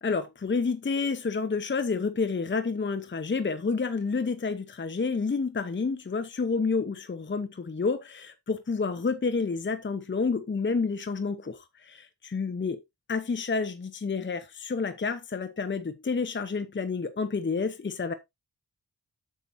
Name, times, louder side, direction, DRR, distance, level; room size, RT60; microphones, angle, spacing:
voice 1, 0.0-12.8 13.1-18.1, left 4 dB, 30° left, 0.8 m, -29 dB
10.5 x 7.0 x 2.6 m
wide cardioid pair, 75°, 40 cm